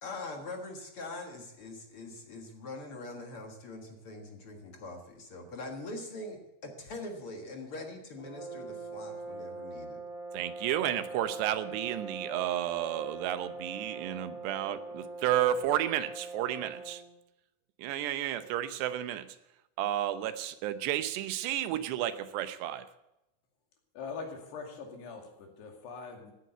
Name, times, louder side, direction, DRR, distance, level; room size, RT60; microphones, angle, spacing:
voice 1, 0.0-10.0, left 2 dB, 55° left, 3 dB, 1.6 m, -43 dB
sound 1, 8.2-17.1, right 3 dB, 15° left, 0.9 m, -42 dB
voice 2, 10.3-17.0 17.8-19.3 19.8-22.9, right 12 dB, 90° right, 11 dB, 3.0 m, -32 dB
voice 3, 23.9-26.3, left 5 dB, 80° left, 2 dB, 4.5 m, -42 dB
16.5 x 9.4 x 8.0 m, 0.89 s
omnidirectional pair, 4.7 m